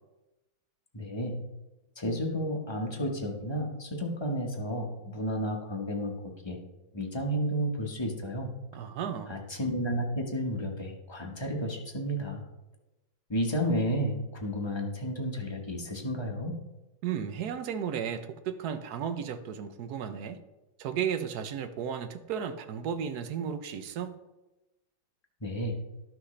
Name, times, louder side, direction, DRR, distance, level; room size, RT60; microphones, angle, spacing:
voice 1, 0.9-1.3 2.0-6.6 6.9-8.5 9.3-12.4 13.3-16.6 25.4-25.7, equal, 20° left, 0 dB, 0.8 m, -32 dB
voice 2, 8.7-9.4 17.0-20.4 20.8-24.1, right 8 dB, 65° right, 10 dB, 1.0 m, -34 dB
12.5 x 6.1 x 3.2 m, 1.0 s
omnidirectional pair, 2.2 m